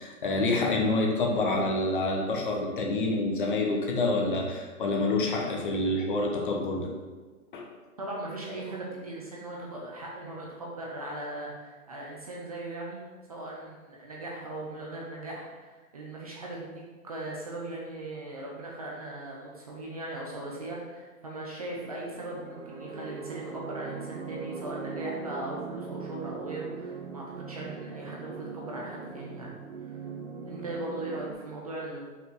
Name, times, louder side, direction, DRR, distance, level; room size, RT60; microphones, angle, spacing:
voice 1, 0.0-6.9 7.5-7.7, left 2 dB, 35° left, 0 dB, 0.9 m, -27 dB
voice 2, 8.0-13.0 13.3-29.5 29.8-30.1 30.5-32.0, right 2 dB, 25° right, -3 dB, 0.6 m, -39 dB
sound 1, 21.8-31.3, right 5 dB, 60° right, 1.1 m, -40 dB
5.6 x 4.2 x 4.6 m, 1.3 s
hypercardioid pair, 160°, 44 cm